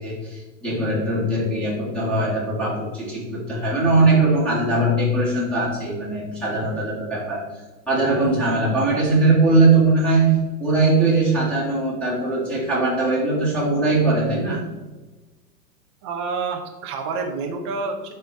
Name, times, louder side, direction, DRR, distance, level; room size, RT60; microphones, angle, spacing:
voice 1, 0.0-7.5 7.9-14.6, right 2 dB, ahead, -7 dB, 2.1 m, -20 dB
voice 2, 16.0-18.1, right 4 dB, 20° right, 2 dB, 0.4 m, -28 dB
11.5 x 4.4 x 3.4 m, 1.2 s
hypercardioid pair, 145°, 49 cm